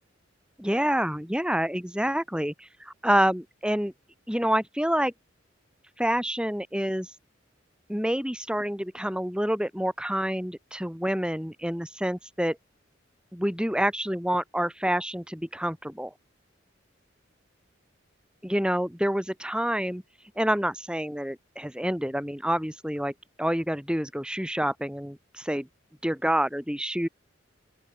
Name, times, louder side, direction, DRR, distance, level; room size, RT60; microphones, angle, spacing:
voice 1, 0.6-3.9 4.3-5.1 6.0-7.1 7.9-12.6 13.3-16.1 18.4-20.0 20.4-23.1 23.4-25.7 26.0-27.1, equal, 5° right, 7.2 m, -27 dB
open air
head